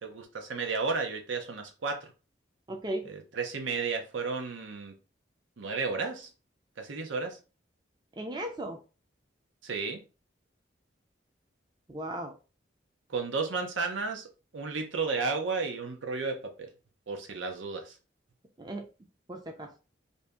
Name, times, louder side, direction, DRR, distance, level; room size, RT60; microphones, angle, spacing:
voice 1, 0.0-2.1 3.0-4.9 5.6-6.3 6.8-7.4 9.6-10.0 13.1-14.3 14.5-16.7 17.1-18.0, right 4 dB, 80° right, 0.7 m, -33 dB
voice 2, 2.7-3.1 8.2-8.8 11.9-12.3 18.6-18.9 19.3-19.7, right 1 dB, 20° right, 0.4 m, -36 dB
2.7 x 2.7 x 3.4 m
head